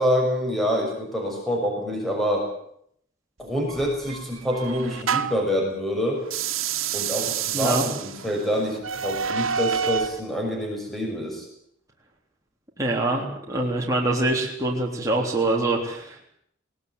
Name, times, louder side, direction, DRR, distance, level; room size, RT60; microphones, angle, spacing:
voice 1, 0.0-2.5 3.4-6.2 6.9-11.5, equal, ahead, 0 dB, 6.3 m, -26 dB
sound 1, 3.7-5.5 6.2-10.2, right 7 dB, 80° right, 1.7 m, -28 dB
voice 2, 7.5-7.8 12.8-16.3, right 2 dB, 15° right, -2 dB, 3.5 m, -24 dB
21.0 x 19.0 x 9.6 m, 0.70 s
head